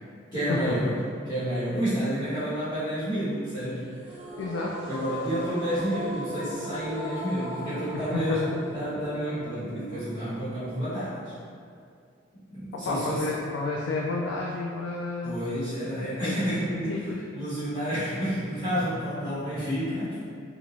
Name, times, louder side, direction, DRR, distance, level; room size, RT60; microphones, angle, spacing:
voice 1, 0.3-1.0 1.2-3.9 4.9-11.3 12.5-13.2 15.2-16.9 17.3-20.2, equal, 25° left, -16 dB, 1.2 m, -30 dB
sound 1, 4.0-11.1, equal, 10° right, 0.4 m, -38 dB
sound 2, 4.1-12.1, right 2 dB, 55° right, 0.6 m, -47 dB
voice 2, 4.4-4.8 7.9-8.6 12.7-15.3 16.2-16.4 16.6-17.2, left 3 dB, 90° left, -2 dB, 0.3 m, -31 dB
3.0 x 2.4 x 2.5 m, 2.2 s
head